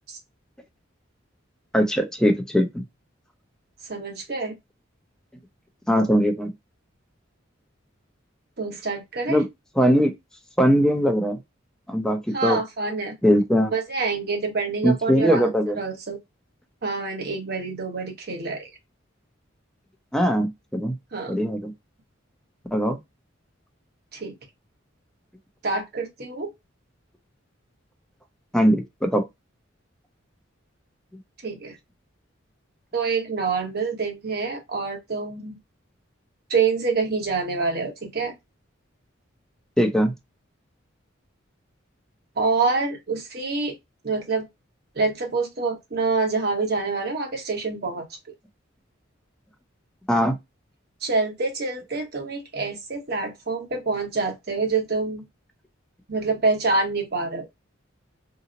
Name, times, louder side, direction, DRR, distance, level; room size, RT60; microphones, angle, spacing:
voice 1, 1.7-2.8 5.9-6.5 9.3-9.5 9.8-10.1 10.6-11.4 11.9-12.6 13.2-13.7 14.8-15.8 20.1-21.0 21.3-21.7 22.7-23.0 28.5-29.2 39.8-40.1 50.1-50.3, equal, 5° left, 0.5 m, -20 dB
voice 2, 3.9-4.5 8.6-9.4 12.3-13.1 13.7-15.5 15.8-16.2 16.8-18.7 21.1-21.4 24.1-24.3 25.6-26.5 31.4-31.8 32.9-35.6 36.5-38.3 42.4-43.7 44.0-44.5 45.0-48.0 51.0-55.2 56.1-57.5, right 4 dB, 50° right, 1.0 m, -26 dB
2.9 x 2.0 x 3.7 m
head